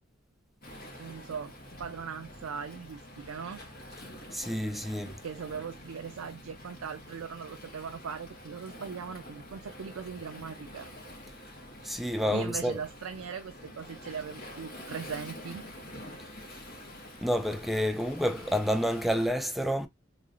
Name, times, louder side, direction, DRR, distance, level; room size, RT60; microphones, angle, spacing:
Waves surf, 0.6-19.3, left 1 dB, 45° left, 1.4 m, -47 dB
voice 1, 1.0-1.5 1.8-3.6 5.2-10.9 12.3-15.6, right 6 dB, 90° right, 0.4 m, -39 dB
voice 2, 4.3-5.2 11.8-12.8 17.2-19.9, equal, ahead, 0.3 m, -29 dB
3.7 x 3.1 x 2.5 m
head